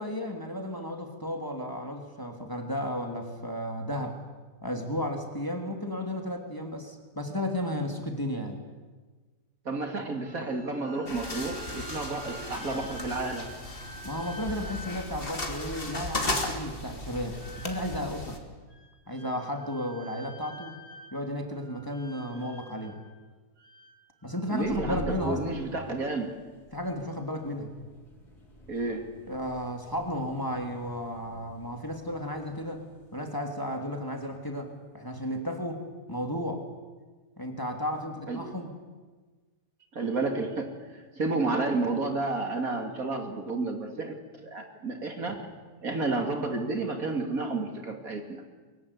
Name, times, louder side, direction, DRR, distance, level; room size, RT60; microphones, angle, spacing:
voice 1, 0.0-4.2 4.6-8.6 14.0-18.4 19.1-20.8 21.1-23.0 24.2-25.6 26.7-27.7 29.3-32.8 33.1-36.6 37.4-38.7, left 1 dB, 10° left, 3 dB, 3.0 m, -33 dB
voice 2, 9.6-13.5 24.5-26.3 28.7-29.1 38.3-38.5 39.9-44.1 44.4-45.4 45.8-48.4, right 3 dB, 55° right, 4 dB, 3.0 m, -31 dB
sound 1, 10.1-16.3 17.4-18.2 18.7-21.3 21.6-23.1 23.6-25.6, right 1 dB, 70° right, 3.8 m, -48 dB
sound 2, 11.1-18.4, left 2 dB, 30° left, 3.0 m, -36 dB
sound 3, 24.5-34.9, left 1 dB, 65° left, 5.2 m, -48 dB
23.5 x 23.0 x 9.9 m, 1.4 s
omnidirectional pair, 1.8 m